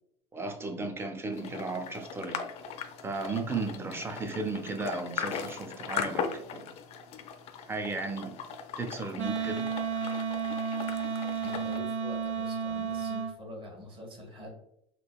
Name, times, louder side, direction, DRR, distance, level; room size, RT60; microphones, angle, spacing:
voice 1, 0.3-2.4 3.0-6.7 7.7-8.4 8.8-9.7, right 3 dB, 15° right, 0.5 m, -35 dB
sound 1, 1.3-11.8, left 7 dB, 45° left, 0.4 m, -39 dB
Wind instrument woodwind instrument, 9.2-13.3, right 6 dB, 85° right, 0.6 m, -32 dB
voice 2, 11.4-14.5, left 1 dB, 35° right, 1.2 m, -45 dB
3.7 x 2.3 x 2.3 m
supercardioid pair, 100°, 15 cm